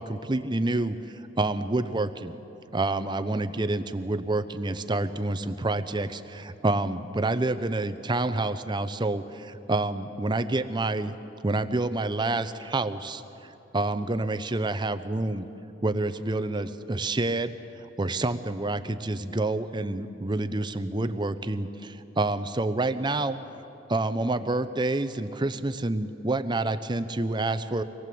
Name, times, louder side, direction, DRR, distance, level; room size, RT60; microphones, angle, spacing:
voice 1, 0.0-2.3 2.7-11.1 11.4-15.5 15.8-17.6 17.8-23.4 23.9-27.8, right 2 dB, 25° right, 11 dB, 0.7 m, -28 dB
24.5 x 19.0 x 7.7 m, 3.0 s
head